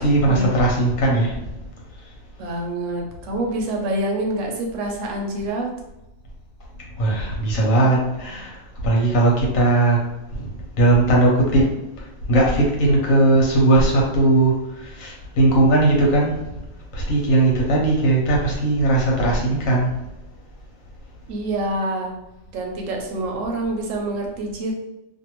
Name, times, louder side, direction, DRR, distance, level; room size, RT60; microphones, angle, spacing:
voice 1, 0.0-1.5 6.9-10.0 10.3-16.5 16.9-20.0, right 2 dB, 85° left, -2 dB, 1.2 m, -19 dB
voice 2, 2.4-5.7 21.3-22.1 22.5-24.7, right 1 dB, 75° right, 1 dB, 1.0 m, -26 dB
2.5 x 2.5 x 2.9 m, 0.94 s
omnidirectional pair, 1.3 m